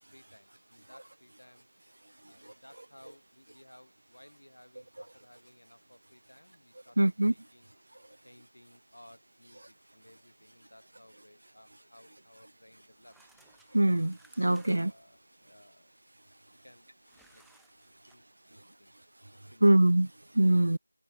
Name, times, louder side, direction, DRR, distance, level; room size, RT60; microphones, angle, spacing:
voice 1, 0.1-1.7 2.3-7.7 8.2-13.2 14.7-15.9 16.6-16.9 17.3-17.4 18.1-18.2 18.5-18.9 19.3-19.8, left 1 dB, 70° left, 6.9 m, -58 dB
voice 2, 7.0-7.3 13.7-14.9 19.6-20.1 20.3-20.8, right 1 dB, 55° right, 0.5 m, -23 dB
sound 1, 12.9-15.1 17.0-18.1, right 3 dB, ahead, 4.2 m, -64 dB
figure-of-eight pair, 170°, 0 cm